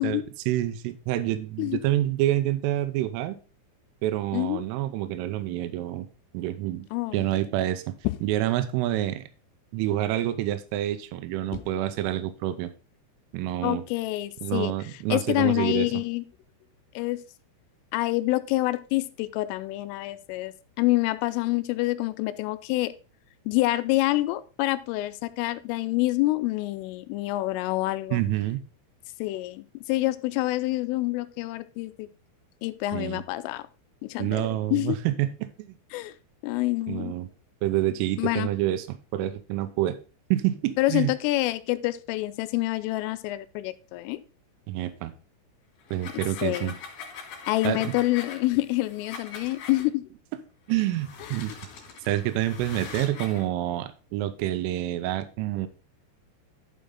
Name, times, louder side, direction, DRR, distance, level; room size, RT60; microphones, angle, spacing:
voice 1, 0.0-3.4 4.0-6.1 6.3-6.9 7.1-8.0 8.2-9.3 9.7-12.7 13.3-13.8 14.4-15.9 28.1-28.6 32.9-33.2 34.2-35.7 36.9-37.3 37.6-40.0 40.3-41.1 44.7-45.1 45.9-46.7 47.6-47.9 50.7-51.5 52.1-55.7, right 13 dB, 85° right, 11 dB, 3.3 m, -27 dB
voice 2, 4.3-4.6 6.9-7.2 11.5-11.6 13.6-14.7 15.1-16.2 17.0-17.2 17.9-22.9 23.5-28.2 29.2-32.1 32.6-33.6 34.1-35.0 35.9-36.1 36.4-37.1 38.2-38.5 40.8-44.2 46.4-46.8 47.5-50.0, left 18 dB, 85° left, 12 dB, 3.1 m, -27 dB
sound 1, 45.8-49.9 50.7-53.5, left 5 dB, 50° left, 3.5 m, -42 dB
12.0 x 5.2 x 3.8 m, 0.33 s
omnidirectional pair, 5.8 m